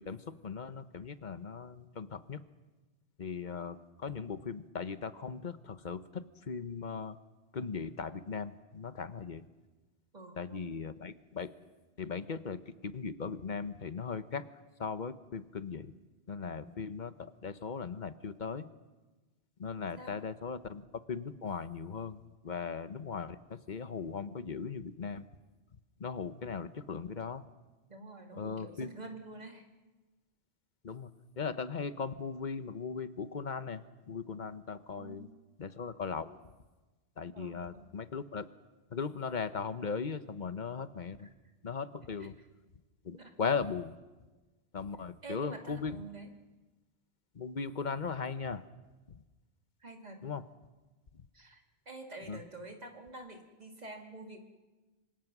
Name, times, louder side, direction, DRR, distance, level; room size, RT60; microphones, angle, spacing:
voice 1, 0.0-2.4 3.2-7.2 7.5-9.4 10.4-11.5 12.0-14.4 14.8-15.9 16.3-18.7 19.6-25.3 26.0-27.4 28.4-28.9 30.8-31.1 31.4-33.8 34.1-35.3 35.6-36.4 37.2-38.4 38.9-41.3 41.6-42.3 43.0-43.9 44.7-46.0 47.3-48.6 49.1-49.2 50.2-50.4 52.3-52.4, left 5 dB, 45° left, 12 dB, 1.1 m, -38 dB
voice 2, 10.1-10.7 16.4-16.8 19.8-20.1 27.9-29.6 35.0-35.3 37.3-37.8 42.2-42.3 43.2-43.3 45.2-46.3 49.8-50.2 51.3-54.4, right 2 dB, 40° right, 3 dB, 2.6 m, -48 dB
26.0 x 25.5 x 6.1 m, 1.2 s
omnidirectional pair, 1.1 m